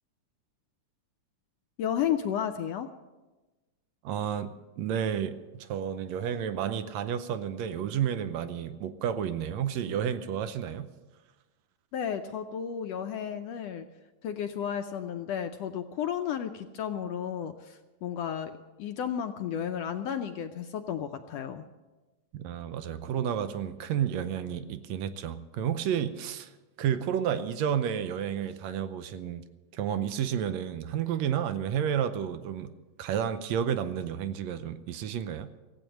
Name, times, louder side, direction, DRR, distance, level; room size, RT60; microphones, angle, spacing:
voice 1, 1.8-2.9 11.9-13.9 14.2-21.7, left 9 dB, 75° left, 1.6 m, -33 dB
voice 2, 4.0-10.9 22.3-26.5 26.8-29.4 29.7-32.7 33.0-35.5, right 9 dB, 75° right, 1.8 m, -31 dB
16.0 x 8.6 x 9.0 m
omnidirectional pair, 3.4 m